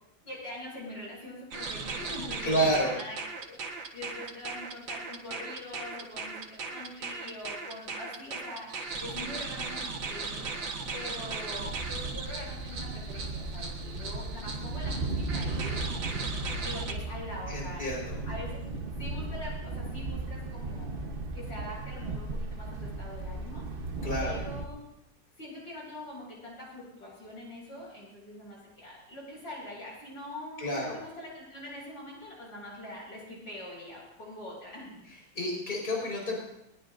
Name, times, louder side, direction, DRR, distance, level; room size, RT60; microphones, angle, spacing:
voice 1, 0.2-10.4 10.9-17.9 18.2-18.6 19.0-20.9 21.3-23.7 24.2-24.8 25.4-35.1, left 1 dB, 90° left, -4 dB, 8.9 m, -43 dB
sound 1, 1.5-16.9, right 4 dB, 85° right, 2.2 m, -38 dB
voice 2, 2.4-2.9 17.5-18.2 24.0-24.4 30.6-31.0 35.3-36.4, equal, 25° left, -2 dB, 5.1 m, -29 dB
Thunder, 11.5-24.6, right 2 dB, 35° right, 1.0 m, -36 dB
20.5 x 20.5 x 2.6 m, 0.82 s
omnidirectional pair, 2.0 m